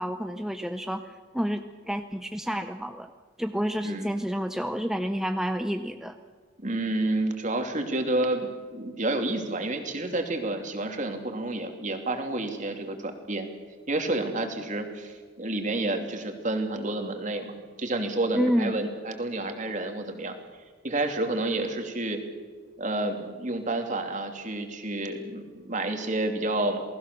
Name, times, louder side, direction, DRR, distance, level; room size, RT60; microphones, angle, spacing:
voice 1, 0.0-3.1 3.4-6.2 18.3-18.8, equal, ahead, 7 dB, 0.7 m, -29 dB
voice 2, 6.6-13.5 13.9-20.3 20.8-22.2 22.8-26.8, right 2 dB, 40° right, 5 dB, 2.8 m, -29 dB
28.5 x 19.0 x 6.9 m, 1.5 s
head